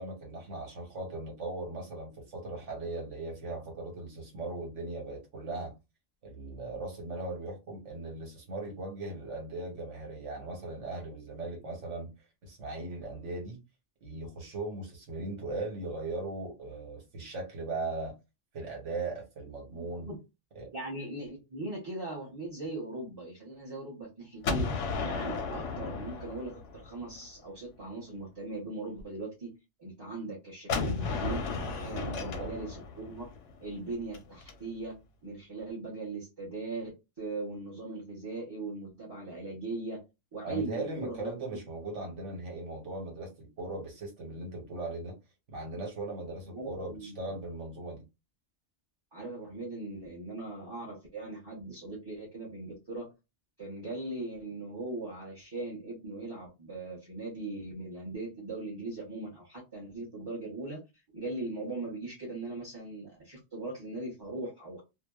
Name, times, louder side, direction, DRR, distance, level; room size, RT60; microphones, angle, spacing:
voice 1, 0.0-5.7 6.2-12.1 12.4-13.6 14.0-18.1 18.5-20.1 20.5-20.7 32.1-32.5 40.4-45.1 45.5-48.0, right 2 dB, 85° right, 1.4 m, -38 dB
voice 2, 19.7-20.2 20.7-24.7 25.0-29.5 29.8-31.4 31.8-33.2 33.6-34.9 35.2-40.0 40.3-41.3 46.5-47.3 49.1-53.1 53.6-60.8 61.1-64.8, right 2 dB, 25° right, 0.7 m, -39 dB
Gunshot gunfire, 24.4-27.3 30.7-34.5, left 4 dB, 85° left, 0.9 m, -34 dB
2.6 x 2.1 x 2.2 m
omnidirectional pair, 1.2 m